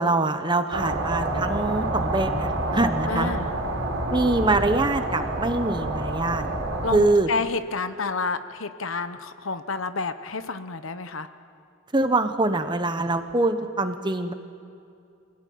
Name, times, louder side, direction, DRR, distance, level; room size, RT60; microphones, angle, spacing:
voice 1, 0.0-3.3 4.1-6.5 6.9-7.3 11.9-14.3, right 2 dB, 20° right, 8 dB, 1.2 m, -24 dB
sound 1, 0.7-7.0, right 2 dB, 90° right, 3.9 m, -28 dB
voice 2, 3.1-3.5 6.8-11.3, left 4 dB, 80° left, 10 dB, 1.1 m, -29 dB
26.0 x 17.5 x 9.5 m, 2.5 s
head